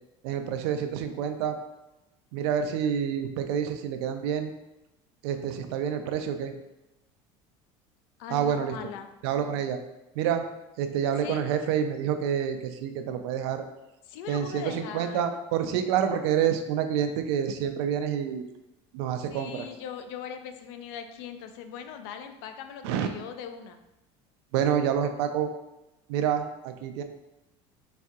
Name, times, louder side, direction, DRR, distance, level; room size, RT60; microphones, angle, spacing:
voice 1, 0.2-1.6 2.3-4.5 5.2-6.6 8.3-8.7 9.2-9.8 10.1-10.5 10.8-13.6 14.3-18.4 18.9-19.7 22.8-23.1 24.5-25.5 26.1-27.0, right 8 dB, 90° right, 7 dB, 0.4 m, -28 dB
voice 2, 8.2-9.1 11.2-11.4 14.1-15.2 19.3-23.8, left 8 dB, 80° left, 7 dB, 0.4 m, -40 dB
4.1 x 2.6 x 2.3 m, 0.96 s
cardioid pair, 150°, 14 cm